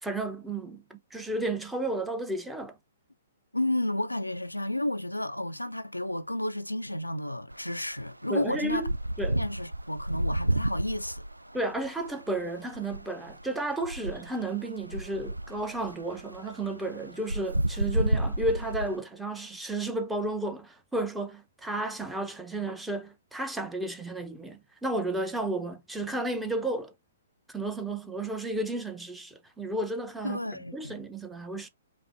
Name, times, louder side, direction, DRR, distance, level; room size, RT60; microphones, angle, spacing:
voice 1, 0.0-2.8 8.3-8.9 9.2-9.4 11.5-26.9 27.5-30.4 30.7-31.7, right 2 dB, 5° right, 0.8 m, -33 dB
voice 2, 3.5-8.8 9.4-11.2 30.2-31.0, left 1 dB, 90° left, 0.4 m, -32 dB
sound 1, 7.5-7.6 7.9-18.9, right 1 dB, 85° right, 0.4 m, -31 dB
5.2 x 2.1 x 4.3 m
figure-of-eight pair, 120°, 0 cm